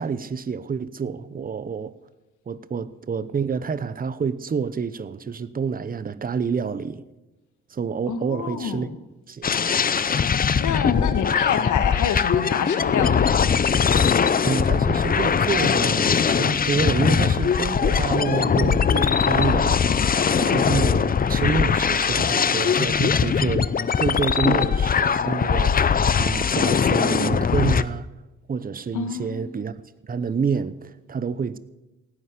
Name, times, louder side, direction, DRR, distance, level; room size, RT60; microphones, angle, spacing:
voice 1, 0.0-1.9 2.5-7.0 7.7-8.9 9.3-9.5 14.5-19.8 20.4-23.7 24.0-25.9 26.2-28.1 28.5-29.8 30.0-31.6, right 6 dB, 30° right, 0.8 m, -28 dB
voice 2, 8.1-9.0 10.6-13.5 28.9-29.5, left 8 dB, 75° left, 1.6 m, -27 dB
sound 1, 9.4-27.8, left 6 dB, 30° left, 0.6 m, -21 dB
17.0 x 9.8 x 6.7 m
cardioid pair, 90°, 30 cm